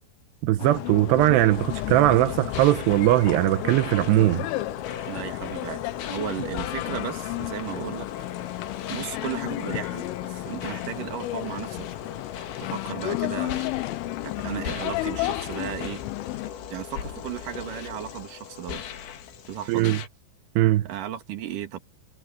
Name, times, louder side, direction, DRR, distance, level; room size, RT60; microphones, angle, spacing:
voice 1, 0.4-4.5 19.7-20.0 20.6-20.9, right 15 dB, 85° right, 2.5 m, -20 dB
sound 1, 0.6-16.5, left 18 dB, 90° left, 3.5 m, -33 dB
sound 2, 1.5-20.1, left 9 dB, 70° left, 4.5 m, -38 dB
voice 2, 5.1-8.1 8.9-11.9 12.6-13.7 14.2-16.0 16.7-18.8 19.5-20.0 20.8-21.8, right 10 dB, 50° right, 3.0 m, -35 dB
omnidirectional pair, 5.7 m